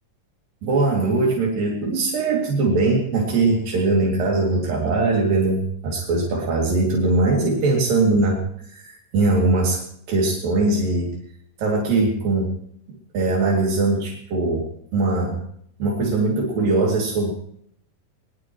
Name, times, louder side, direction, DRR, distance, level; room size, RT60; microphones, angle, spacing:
voice 1, 0.6-9.8 10.1-11.2 11.6-12.6 12.9-15.4 15.8-17.3, right 3 dB, 80° right, -1 dB, 4.3 m, -21 dB
21.5 x 21.5 x 3.1 m, 0.67 s
omnidirectional pair, 4.0 m